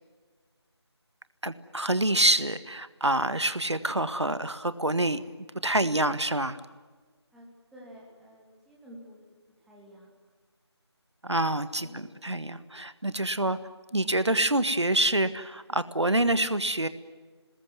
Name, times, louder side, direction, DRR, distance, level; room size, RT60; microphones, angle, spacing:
voice 1, 1.4-5.2 5.6-6.6 11.2-13.6 13.9-16.9, right 1 dB, 75° right, 13 dB, 1.7 m, -26 dB
voice 2, 7.3-9.2 9.7-10.1 11.8-12.3, equal, ahead, -5 dB, 2.5 m, -51 dB
27.5 x 20.5 x 9.6 m, 1.4 s
figure-of-eight pair, 165°, 15 cm